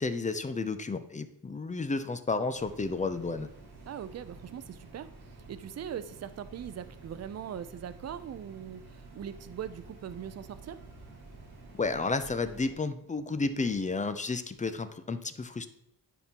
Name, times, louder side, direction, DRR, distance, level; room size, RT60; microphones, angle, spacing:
voice 1, 0.0-3.5 11.7-15.7, left 3 dB, 20° left, 10 dB, 0.4 m, -32 dB
sound 1, 2.5-12.7, right 3 dB, 85° right, 1.6 m, -50 dB
voice 2, 3.9-5.1 5.5-10.8, right 9 dB, 45° right, 13 dB, 0.5 m, -41 dB
9.8 x 3.7 x 2.9 m, 0.77 s
cardioid pair, 85°, 38 cm